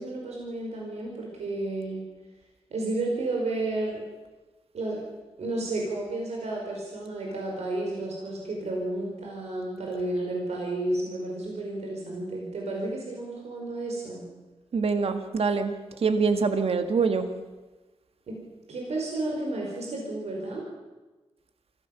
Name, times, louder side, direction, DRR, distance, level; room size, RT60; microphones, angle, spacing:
voice 1, 0.0-2.0 2.7-4.0 4.7-5.1 5.4-14.2 18.3-18.4 18.7-20.6, right 2 dB, 90° right, -1 dB, 5.2 m, -32 dB
voice 2, 14.7-15.7 16.0-17.3, right 4 dB, 65° right, 8 dB, 1.9 m, -24 dB
25.0 x 16.5 x 7.2 m, 1.2 s
wide cardioid pair, 90°, 11 cm